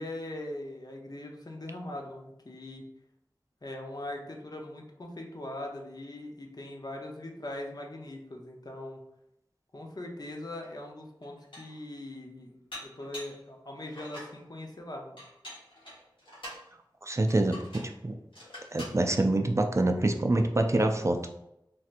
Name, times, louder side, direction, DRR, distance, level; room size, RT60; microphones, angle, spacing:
voice 1, 0.0-2.8 3.6-9.0 9.7-15.2, left 1 dB, 50° left, 1 dB, 0.6 m, -41 dB
Dishes pots and pans, 10.6-10.7 11.2-11.8 12.7-13.4 13.9-14.4 15.2-16.7 17.3-17.9 18.3-19.0, left 1 dB, 85° left, 1.2 m, -45 dB
voice 2, 17.0-18.2 18.7-21.2, right 2 dB, 35° right, 5 dB, 0.3 m, -26 dB
3.3 x 2.7 x 2.5 m, 0.82 s
wide cardioid pair, 40°, 8 cm